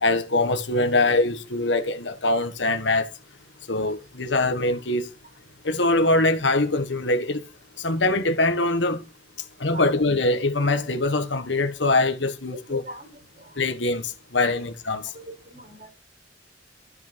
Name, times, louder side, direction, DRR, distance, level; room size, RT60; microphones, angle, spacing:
voice 1, 0.0-3.1 3.7-5.1 5.6-7.4 7.8-9.0 9.6-12.8 13.6-15.1, left 2 dB, 75° left, 1.5 m, -23 dB
voice 2, 12.7-13.1 13.4-13.5 15.1-15.9, right 1 dB, 50° right, 4.9 m, -42 dB
13.0 x 6.3 x 5.2 m
head